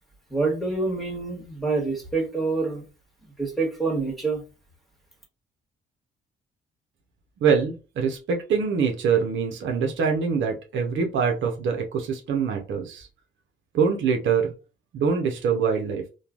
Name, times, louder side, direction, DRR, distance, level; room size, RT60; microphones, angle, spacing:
voice 1, 0.3-2.8 3.4-4.4, right 3 dB, ahead, -1 dB, 1.4 m, -26 dB
voice 2, 7.4-13.1 13.7-14.5 14.9-16.0, right 6 dB, 75° right, 3 dB, 0.8 m, -24 dB
3.0 x 2.3 x 2.4 m, 0.31 s
cardioid pair, 90°, 20 cm